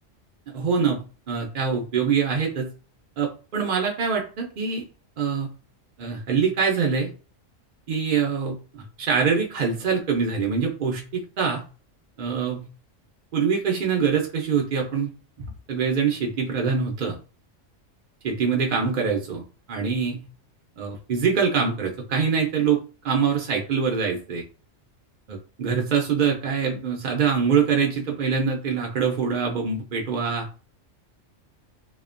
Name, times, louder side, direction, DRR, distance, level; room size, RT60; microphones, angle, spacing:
voice 1, 0.5-2.7 3.2-4.8 5.2-5.5 6.0-7.1 7.9-11.7 12.2-12.7 13.3-15.1 15.4-17.2 18.2-19.4 19.7-20.3 20.8-22.8 23.0-24.4 25.3-30.5, right 6 dB, 60° right, 1 dB, 0.5 m, -24 dB
2.8 x 2.1 x 2.4 m, 0.35 s
omnidirectional pair, 1.3 m